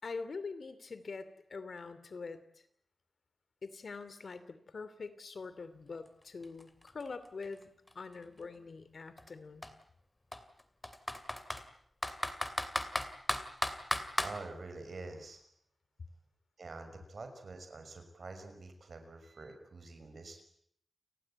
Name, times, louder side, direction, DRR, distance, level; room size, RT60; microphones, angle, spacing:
voice 1, 0.0-2.4 3.6-9.7, left 4 dB, 65° left, 13 dB, 2.8 m, -44 dB
Computer keyboard, 6.1-6.2 6.4-8.4 9.2-9.3 9.6-9.7 10.3-11.6 12.0-14.3, left 1 dB, 15° left, 2.6 m, -35 dB
voice 2, 14.2-15.4 16.6-20.4, right 3 dB, 60° right, 7 dB, 5.7 m, -46 dB
30.0 x 19.5 x 8.9 m, 0.68 s
wide cardioid pair, 115°, 0 cm